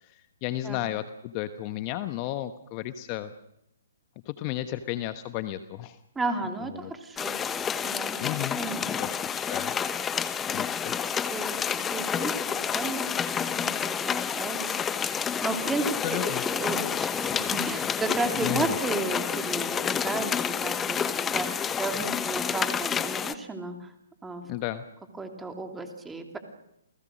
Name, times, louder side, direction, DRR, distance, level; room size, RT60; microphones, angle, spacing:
voice 1, 0.0-3.3 4.2-6.0 6.8-6.9 8.2-8.6 9.0-9.7 10.5-10.9 16.0-16.4 18.4-18.8 24.5-24.8, left 14 dB, 30° left, 11 dB, 1.2 m, -33 dB
voice 2, 6.1-7.3 7.8-8.2 8.6-9.1 11.3-13.0 13.3-23.9 24.2-24.5 25.2-26.4, right 3 dB, 10° right, 5 dB, 3.0 m, -34 dB
sound 1, 7.2-23.3, left 7 dB, 15° left, 0.9 m, -29 dB
29.0 x 19.5 x 6.5 m, 0.80 s
figure-of-eight pair, 125°, 0 cm